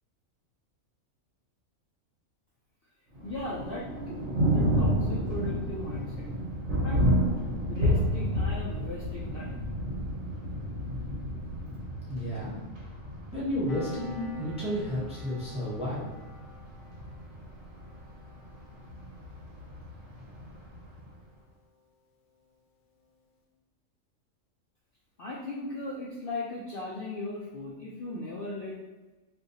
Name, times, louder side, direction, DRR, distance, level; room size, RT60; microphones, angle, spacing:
voice 1, 3.2-3.9 4.5-6.3 6.8-7.3 7.7-9.7 25.2-28.8, left 2 dB, 60° left, -5 dB, 0.6 m, -37 dB
Thunder, 3.2-21.1, equal, 65° right, 1.1 m, -31 dB
voice 2, 12.1-12.6 13.3-16.1, equal, 5° right, -8 dB, 0.6 m, -32 dB
Piano, 13.7-20.7 21.0-21.2, left 3 dB, 85° left, 1.0 m, -48 dB
3.7 x 2.6 x 2.7 m, 1.1 s
omnidirectional pair, 1.4 m